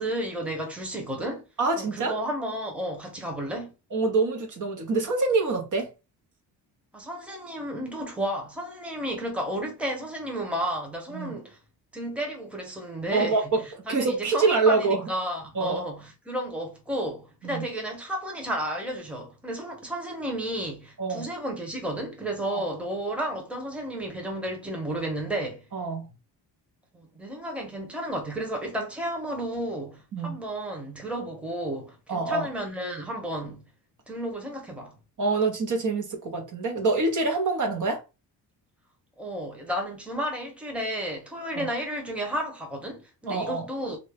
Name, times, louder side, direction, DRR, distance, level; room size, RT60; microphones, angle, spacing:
voice 1, 0.0-1.5 1.8-3.7 6.9-11.6 11.9-13.5 13.9-25.7 26.9-33.6 34.1-34.9 39.2-44.0, right 1 dB, 5° right, 1.0 m, -32 dB
voice 2, 1.6-2.2 3.9-5.9 11.1-11.4 13.1-13.6 13.9-15.1 15.5-15.8 17.4-17.6 21.0-21.3 22.5-22.6 25.7-26.1 30.1-30.4 32.1-32.5 35.2-38.0 41.6-41.7 43.3-43.7, right 3 dB, 45° right, 1.1 m, -25 dB
2.8 x 2.7 x 3.3 m
cardioid pair, 110°, 41 cm